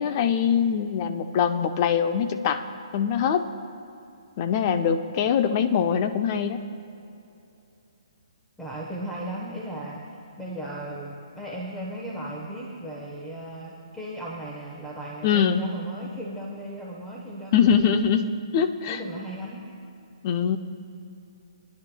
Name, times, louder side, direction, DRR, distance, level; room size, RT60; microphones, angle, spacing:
voice 1, 0.0-2.6 2.9-3.5 4.4-6.7 15.2-15.6 17.5-19.0 20.2-20.6, left 7 dB, 35° left, 9 dB, 0.6 m, -23 dB
voice 2, 8.6-18.0 18.9-19.7, right 1 dB, 5° left, -4 dB, 1.1 m, -36 dB
25.0 x 10.5 x 2.3 m, 2.8 s
hypercardioid pair, 145°, 3 cm